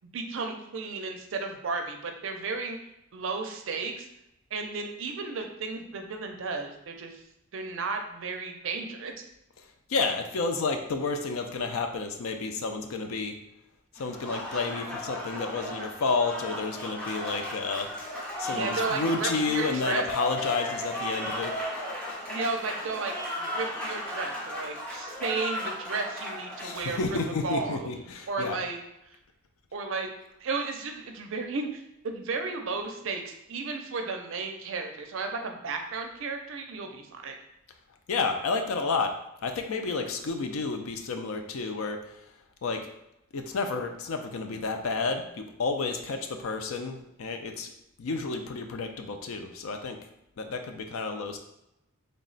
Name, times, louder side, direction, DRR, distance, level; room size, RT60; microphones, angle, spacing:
voice 1, 0.1-2.8 3.1-4.1 4.5-7.2 7.5-9.1 18.4-20.0 22.3-27.8 28.3-28.8 29.7-30.1 30.4-37.4, right 4 dB, 60° right, 4 dB, 0.4 m, -34 dB
voice 2, 9.6-13.4 13.9-17.9 18.4-21.6 26.6-28.6 38.1-39.1 39.4-42.3 42.6-42.9 43.3-47.7 48.0-50.0 50.4-51.4, left 4 dB, 75° left, 5 dB, 0.4 m, -31 dB
Applause, 14.0-27.6, left 1 dB, 5° left, 0.5 m, -35 dB
3.3 x 2.1 x 3.9 m, 0.85 s
head